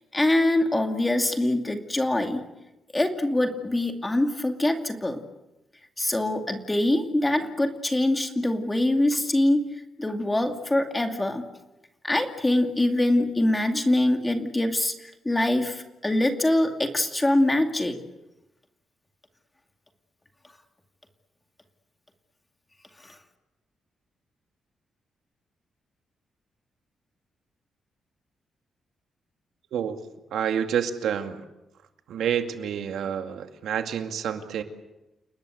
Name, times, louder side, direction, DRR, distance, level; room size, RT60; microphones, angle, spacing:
voice 1, 0.1-2.4 2.9-5.2 6.0-9.6 10.0-11.4 12.0-18.0 23.0-23.2, left 1 dB, 15° left, 5 dB, 2.5 m, -24 dB
voice 2, 30.3-31.4 32.1-34.6, right 8 dB, 90° right, 6 dB, 2.3 m, -28 dB
29.5 x 19.5 x 8.0 m, 0.96 s
wide cardioid pair, 150°, 0 cm